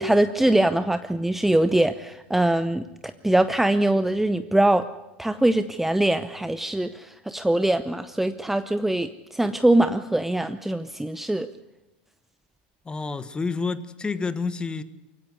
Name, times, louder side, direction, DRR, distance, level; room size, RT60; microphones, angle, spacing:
voice 1, 0.0-2.8 3.2-4.8 5.2-11.5, right 1 dB, 5° right, 0.8 m, -22 dB
voice 2, 12.8-14.8, left 4 dB, 15° left, 1.4 m, -29 dB
23.0 x 17.0 x 9.6 m
hypercardioid pair, 105°, 6 cm